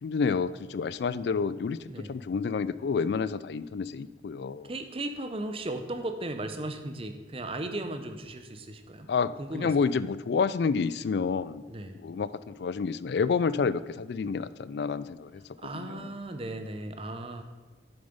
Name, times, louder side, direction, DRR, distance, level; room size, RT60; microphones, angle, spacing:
voice 1, 0.0-1.8 2.1-4.7 9.1-11.6 12.0-15.4 15.7-16.1, left 5 dB, 60° left, 17 dB, 0.3 m, -29 dB
voice 2, 4.6-9.1 9.4-9.7 11.7-12.0 15.6-17.4, right 1 dB, 30° right, 7 dB, 0.7 m, -36 dB
8.1 x 7.0 x 5.1 m, 1.4 s
head